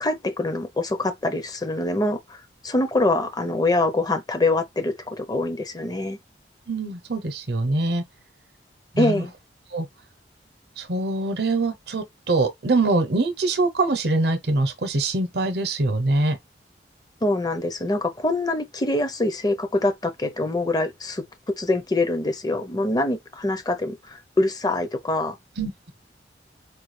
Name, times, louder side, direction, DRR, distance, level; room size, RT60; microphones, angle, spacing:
voice 1, 0.0-6.2 9.0-9.3 17.2-21.2 21.6-25.4, left 2 dB, 20° left, 0.6 m, -24 dB
voice 2, 6.7-8.0 8.9-9.2 9.7-9.9 10.8-16.4 25.6-25.9, right 2 dB, 60° right, 0.8 m, -23 dB
4.6 x 2.3 x 3.2 m
head